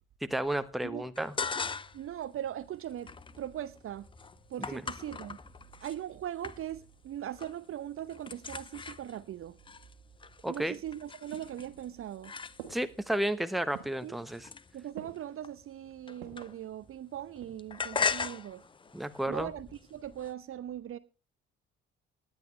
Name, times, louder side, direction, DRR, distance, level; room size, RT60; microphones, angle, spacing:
voice 1, 0.2-1.3 4.7-4.8 10.4-10.7 12.7-14.5 18.9-19.5, right 1 dB, ahead, 1.0 m, -32 dB
sound 1, 1.2-2.1 2.5-6.0 6.4-7.0 7.2-7.7 7.9-13.0 13.6-16.9 17.1-20.3, left 5 dB, 15° left, 0.5 m, -39 dB
voice 2, 1.9-3.1 3.4-4.1 4.5-5.4 5.8-9.6 10.5-12.3 14.0-14.2 14.7-18.6 19.3-21.0, right 11 dB, 45° right, 0.8 m, -40 dB
sound 2, 10.8-12.1 12.6-13.1 13.7-14.2 15.0-15.4 16.2-16.6 17.2-17.8 18.0-18.1, right 9 dB, 75° right, 2.0 m, -49 dB
18.5 x 10.5 x 3.2 m
figure-of-eight pair, 50°, 31 cm